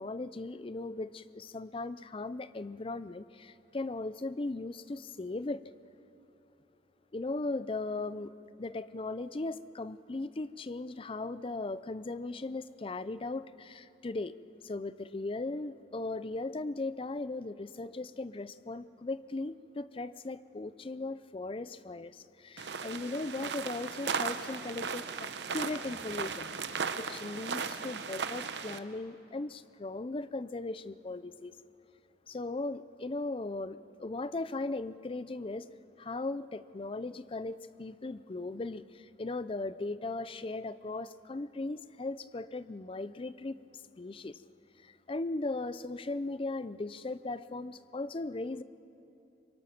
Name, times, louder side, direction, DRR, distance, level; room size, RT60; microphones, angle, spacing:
voice 1, 0.0-5.6 7.1-8.3 8.6-14.3 14.6-31.5 32.3-35.7 36.0-43.6 44.0-44.4 44.8-48.6, left 2 dB, 30° left, 0.5 m, -38 dB
sound 1, 22.6-28.8, right 5 dB, 80° right, 0.9 m, -37 dB
25.5 x 23.0 x 6.0 m
head